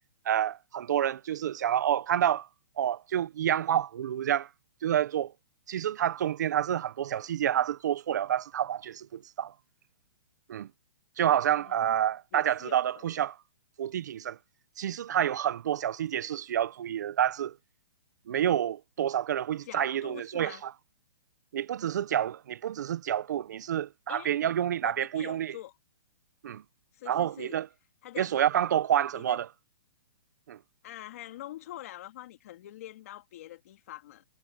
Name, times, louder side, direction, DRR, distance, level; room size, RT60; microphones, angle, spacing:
voice 1, 0.3-2.5 2.8-4.5 4.8-5.3 5.7-9.5 10.5-10.7 11.2-13.4 13.8-14.4 14.8-17.5 18.3-20.7 21.5-25.5 26.4-26.6 27.1-27.7 28.2-29.5 30.5-30.6, right 10 dB, 50° right, 0.6 m, -28 dB
voice 2, 11.6-11.9 12.3-13.0 19.6-20.6 24.1-24.4 24.8-25.8 26.9-27.6 28.0-28.4 29.1-29.4 30.8-34.2, left 14 dB, 40° left, 3.0 m, -45 dB
hypercardioid pair, 170°, 12 cm